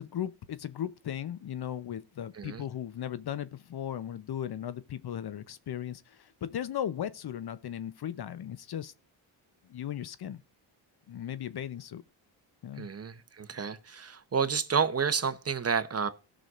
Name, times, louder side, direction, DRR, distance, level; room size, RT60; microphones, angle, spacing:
voice 1, 0.0-8.9 9.6-10.4 11.1-12.0 12.6-12.9, left 10 dB, 55° left, 0.8 m, -37 dB
voice 2, 12.8-16.1, right 6 dB, 30° right, 0.9 m, -30 dB
18.0 x 6.2 x 2.5 m
cardioid pair, 100°, 46 cm